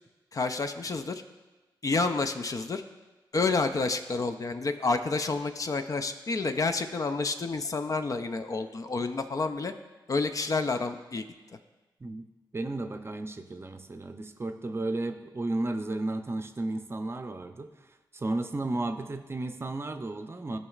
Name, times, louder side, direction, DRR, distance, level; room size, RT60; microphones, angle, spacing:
voice 1, 0.3-1.2 1.8-2.8 3.3-9.7 10.1-11.3, left 3 dB, 45° left, 8 dB, 0.5 m, -29 dB
voice 2, 12.5-20.6, right 2 dB, 30° right, 7 dB, 0.6 m, -33 dB
12.5 x 5.3 x 2.4 m, 1.2 s
cardioid pair, 60°, 8 cm